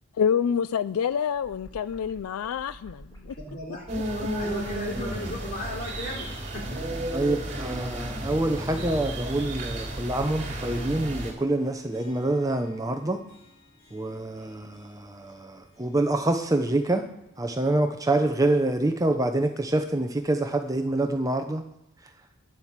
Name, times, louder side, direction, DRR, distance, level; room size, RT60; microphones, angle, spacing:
voice 1, 0.2-3.4, left 7 dB, 90° left, 0.4 m, -27 dB
sound 1, 1.1-10.3, right 1 dB, 20° left, 3.4 m, -49 dB
voice 2, 3.5-3.9 4.1-7.4 8.8-8.9, left 1 dB, 40° left, 3.8 m, -37 dB
sound 2, 3.9-11.3, right 1 dB, 30° right, 3.4 m, -33 dB
Harp, 5.0-16.9 17.2-17.3 18.2-18.3, left 2 dB, 75° left, 5.5 m, -54 dB
voice 3, 7.1-13.2 13.9-17.1 17.4-21.6, right 2 dB, 15° right, 0.7 m, -26 dB
11.0 x 7.8 x 7.3 m
head